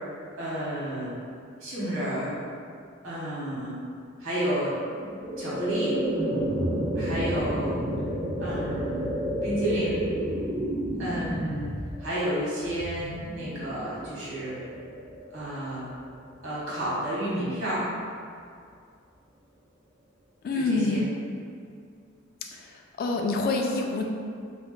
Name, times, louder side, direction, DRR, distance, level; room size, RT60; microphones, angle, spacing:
voice 1, 0.3-1.1 1.6-2.4 3.0-3.8 4.2-4.8 5.4-6.0 6.9-7.8 8.4-9.1 9.4-10.1 11.0-11.7 12.0-14.6 15.3-15.9 16.4-17.9 20.5-21.1, equal, 85° right, -9 dB, 1.2 m, -31 dB
sound 1, 4.9-16.0, right 1 dB, 25° right, 0.4 m, -31 dB
voice 2, 20.4-21.0 22.5-22.6 23.0-24.0, left 3 dB, 50° left, 2 dB, 0.3 m, -26 dB
2.7 x 2.0 x 3.5 m, 2.3 s
head